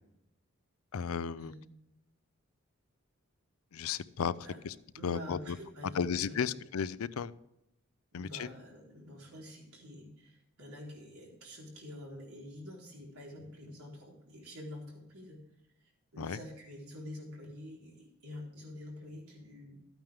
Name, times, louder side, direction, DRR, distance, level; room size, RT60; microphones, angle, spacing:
voice 1, 0.9-1.5 3.7-4.3 4.6-4.7 5.0-5.6 5.9-7.3 8.1-8.5 16.2-16.4, left 6 dB, 70° left, 17 dB, 0.5 m, -34 dB
voice 2, 5.0-6.5 8.1-15.4 16.1-19.8, left 1 dB, 80° right, -2 dB, 4.0 m, -47 dB
13.5 x 9.0 x 3.5 m, 0.86 s
head